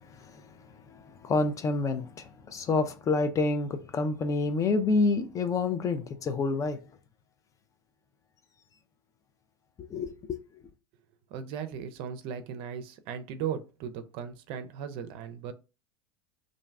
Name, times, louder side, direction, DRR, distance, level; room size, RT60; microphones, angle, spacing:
voice 1, 0.9-6.8 9.8-10.4, left 3 dB, 30° left, 0.4 m, -28 dB
voice 2, 11.3-15.5, right 8 dB, 55° right, 0.5 m, -37 dB
2.5 x 2.3 x 3.3 m
hypercardioid pair, 85°, 11 cm